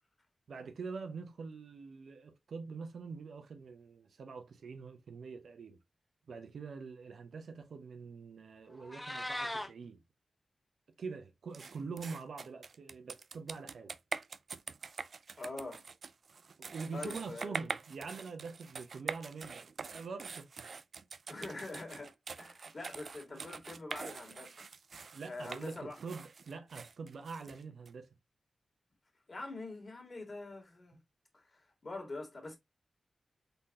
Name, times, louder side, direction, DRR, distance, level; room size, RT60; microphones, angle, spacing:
voice 1, 0.5-5.8 6.3-10.0 11.0-14.0 16.6-20.6 23.3-23.4 25.1-28.1, right 4 dB, 80° right, 0.8 m, -45 dB
Meow, 8.7-9.7, left 1 dB, 15° left, 0.9 m, -39 dB
sound 1, 11.5-27.9, right 5 dB, 65° right, 0.3 m, -45 dB
voice 2, 15.4-15.8 16.9-17.6 21.3-24.7 25.3-26.0 29.3-31.0 31.3-32.6, left 2 dB, 40° left, 2.1 m, -44 dB
4.0 x 3.9 x 2.7 m
wide cardioid pair, 80°, 0 cm